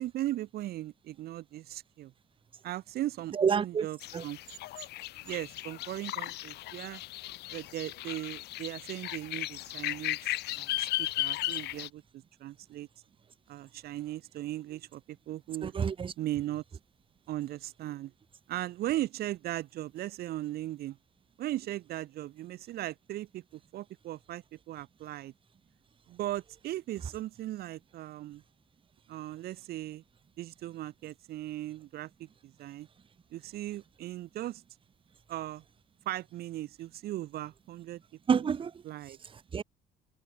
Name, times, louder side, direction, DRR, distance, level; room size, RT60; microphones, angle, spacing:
voice 1, 0.0-2.1 2.6-4.0 4.2-4.4 5.2-7.0 7.5-12.9 13.5-15.7 16.2-16.6 17.3-18.1 18.5-21.0 21.4-25.3 26.1-28.4 29.1-30.0 30.4-32.9 33.3-34.6 35.3-35.6 36.1-38.0 38.8-39.2, right 14 dB, 65° right, 0.9 m, -38 dB
voice 2, 3.3-3.9 4.1-4.2 15.6-16.1 38.3-38.8 39.2-39.6, right 6 dB, 30° right, 1.0 m, -28 dB
sound 1, 4.0-11.9, left 17 dB, 75° left, 1.3 m, -36 dB
cardioid pair, 110°, 17 cm